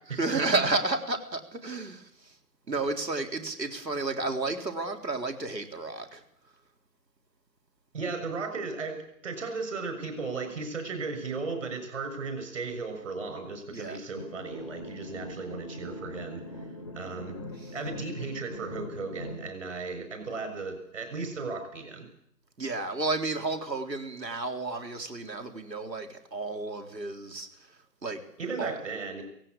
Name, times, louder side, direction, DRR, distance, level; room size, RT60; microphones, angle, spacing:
voice 1, 0.1-2.4 2.7-6.2 13.7-14.0 17.5-17.7 22.6-28.2 28.6-28.8, right 3 dB, 85° right, 6 dB, 3.8 m, -32 dB
voice 2, 7.9-16.4 16.9-17.4 17.7-22.1 28.4-29.2, right 4 dB, 50° right, 7 dB, 6.7 m, -35 dB
sound 1, 14.2-19.5, left 1 dB, 20° left, 0.7 m, -42 dB
18.0 x 16.5 x 8.6 m, 0.73 s
figure-of-eight pair, 155°, 49 cm